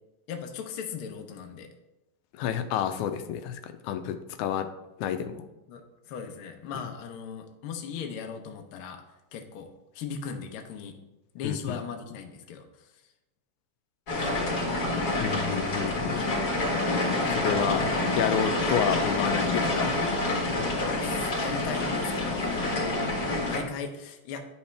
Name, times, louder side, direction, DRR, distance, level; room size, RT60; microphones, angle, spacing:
voice 1, 0.3-1.7 5.7-9.0 9.3-9.7 9.9-11.0 11.3-13.1 14.1-14.3 16.1-16.6 20.8-23.2 23.5-24.5, left 6 dB, 70° left, 4 dB, 1.3 m, -38 dB
voice 2, 2.3-4.7 5.0-5.5 11.4-11.8 15.2-16.2 17.3-17.8 18.2-20.0, left 9 dB, 85° left, 9 dB, 2.0 m, -30 dB
sound 1, 14.1-23.6, left 2 dB, 40° left, 1.8 m, -27 dB
10.0 x 5.5 x 3.4 m, 0.99 s
omnidirectional pair, 3.3 m